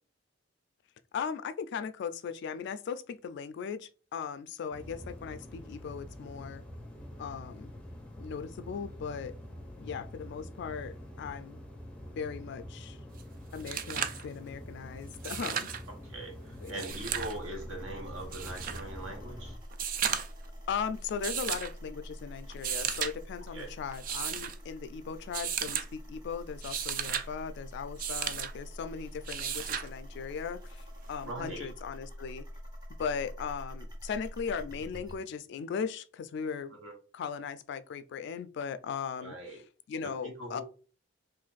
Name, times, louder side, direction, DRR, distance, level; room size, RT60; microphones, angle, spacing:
voice 1, 1.1-6.6 7.2-7.7 8.2-9.3 9.8-11.6 12.2-13.0 13.5-15.7 16.6-16.9 20.7-32.5 33.0-36.8 37.1-39.6 39.9-40.6, left 6 dB, 60° left, 0.3 m, -38 dB
sound 1, 4.7-19.6, equal, 5° left, 0.6 m, -46 dB
sound 2, 13.2-13.3 13.5-14.2 15.1-15.8 16.7-17.4 18.3-18.8 19.7-20.4 21.2-21.7 22.5-23.1 23.9-24.5 25.3-25.9 26.5-27.3 28.0-28.5 29.3-29.9 31.3-31.4, right 8 dB, 45° right, 0.3 m, -34 dB
voice 2, 16.0-19.6 23.5-23.7 31.2-31.7 36.7-36.9 39.2-39.6 40.2-40.6, right 1 dB, 75° right, 1.1 m, -41 dB
sound 3, 16.9-35.2, equal, 20° right, 0.9 m, -46 dB
2.6 x 2.4 x 3.8 m
head